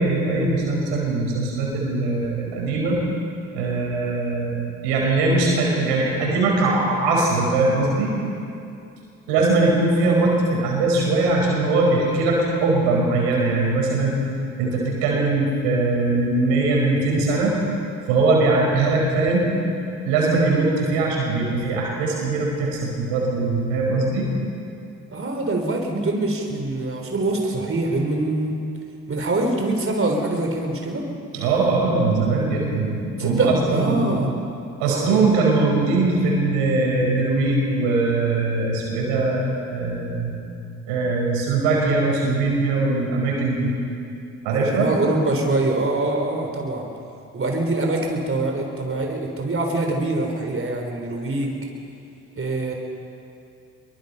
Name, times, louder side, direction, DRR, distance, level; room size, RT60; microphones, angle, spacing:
voice 1, 0.0-3.0 3.5-8.1 9.3-14.2 14.6-17.5 18.1-19.5 20.0-24.3 31.3-34.1 34.8-40.4 40.9-43.7 44.4-44.9, right 3 dB, 80° right, -1 dB, 5.1 m, -21 dB
voice 2, 25.1-28.6 29.1-31.1 33.2-34.3 34.9-35.3 44.6-46.9 47.3-51.5 52.4-52.7, right 2 dB, 35° right, 2 dB, 3.7 m, -24 dB
23.5 x 22.5 x 5.6 m, 2.6 s
hypercardioid pair, 45°, 39 cm